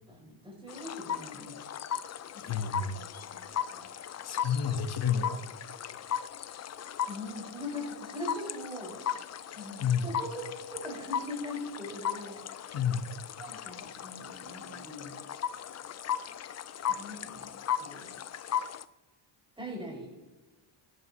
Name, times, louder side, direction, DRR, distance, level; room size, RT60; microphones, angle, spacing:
voice 1, 0.1-1.6 2.3-3.0 3.3-3.4 3.7-3.9 7.1-9.0 9.5-12.8 13.4-15.2 16.9-18.2 19.6-20.3, left 1 dB, 10° right, -3 dB, 5.6 m, -42 dB
sound 1, 0.7-18.8, left 9 dB, 35° left, 0.4 m, -37 dB
voice 2, 2.4-3.0 4.2-5.4 9.8-10.1 12.7-13.1, left 7 dB, 50° left, 6 dB, 1.3 m, -30 dB
23.0 x 11.0 x 3.0 m, 1.2 s
cardioid pair, 135°, 48 cm